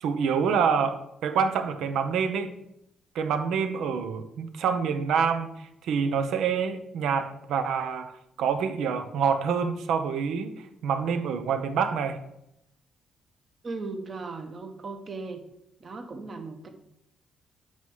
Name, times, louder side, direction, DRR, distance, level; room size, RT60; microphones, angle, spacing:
voice 1, 0.0-2.5 3.1-5.5 5.8-8.1 8.4-10.5 10.8-12.2, right 6 dB, 80° right, 0.8 m, -26 dB
voice 2, 13.6-15.4 15.8-16.7, right 3 dB, 40° right, 1.1 m, -37 dB
7.8 x 3.3 x 5.5 m
cardioid pair, 90°, 0 cm